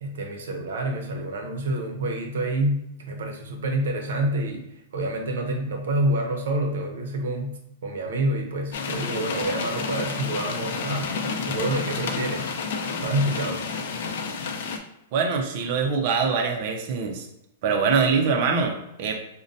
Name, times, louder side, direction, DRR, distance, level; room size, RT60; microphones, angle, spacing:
voice 1, 0.0-11.1 11.5-12.5 13.0-13.6, right 1 dB, 75° right, 3 dB, 0.7 m, -28 dB
sound 1, 8.7-14.8, left 5 dB, 55° left, 0.5 m, -30 dB
voice 2, 15.1-17.3 17.6-19.2, right 5 dB, 40° right, 3 dB, 0.5 m, -23 dB
5.1 x 2.1 x 2.6 m, 0.85 s
supercardioid pair, 175°, 0 cm